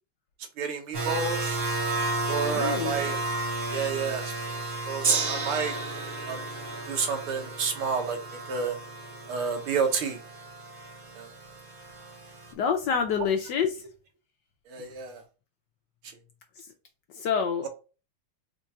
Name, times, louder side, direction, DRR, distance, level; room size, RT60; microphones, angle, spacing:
voice 1, 0.6-1.6 2.3-3.2 3.7-4.3 4.9-5.7 6.3-6.4 6.9-8.2 8.5-8.8 9.3-10.2 11.2-11.3 14.7-15.2, right 5 dB, 80° right, 2.0 m, -30 dB
sound 1, 0.9-12.5, right 2 dB, 40° right, 1.2 m, -34 dB
voice 2, 2.4-3.0 12.6-13.8 17.2-17.7, left 6 dB, 70° left, 1.1 m, -27 dB
Gong, 5.0-11.4 12.2-12.3, right 4 dB, 55° right, 0.8 m, -34 dB
4.5 x 2.5 x 4.2 m
omnidirectional pair, 2.4 m